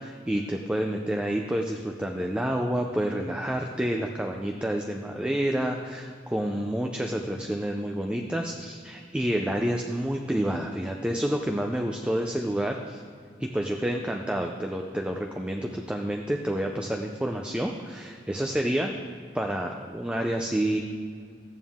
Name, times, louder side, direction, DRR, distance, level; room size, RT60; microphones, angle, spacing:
voice 1, 0.0-13.0 13.4-18.9 19.3-20.8, right 1 dB, 5° right, 2 dB, 0.5 m, -29 dB
14.0 x 9.1 x 3.6 m, 2.2 s
head